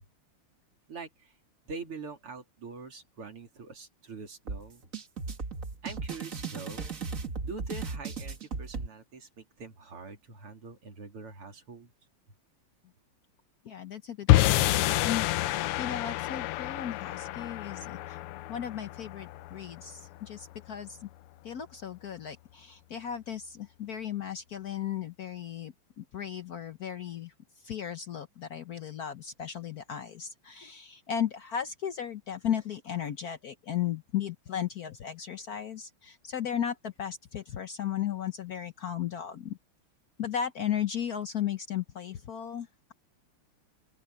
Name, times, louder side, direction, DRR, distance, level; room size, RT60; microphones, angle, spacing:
voice 1, 0.9-1.3 1.7-4.9 5.8-6.9 7.4-11.9, right 4 dB, 80° right, 4.2 m, -44 dB
sound 1, 4.5-8.9, right 4 dB, 40° right, 2.0 m, -36 dB
voice 2, 13.6-18.2 18.5-21.1 21.4-27.3 27.6-39.6 40.2-42.9, left 9 dB, 55° left, 1.1 m, -35 dB
sound 2, 14.3-20.7, left 16 dB, 85° left, 1.5 m, -28 dB
open air
omnidirectional pair, 2.4 m